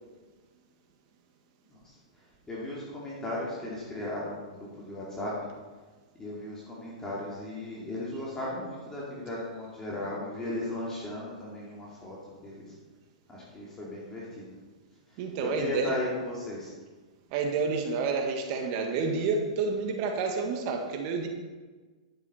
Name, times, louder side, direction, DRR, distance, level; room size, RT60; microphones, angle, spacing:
voice 1, 2.5-5.3 6.2-12.2 12.4-12.6 13.3-14.5 15.4-16.7, left 1 dB, 15° left, -6 dB, 2.5 m, -36 dB
voice 2, 15.2-16.0 17.3-21.3, right 4 dB, 45° right, 3 dB, 1.8 m, -29 dB
10.5 x 7.5 x 4.4 m, 1.3 s
hypercardioid pair, 130°, 4 cm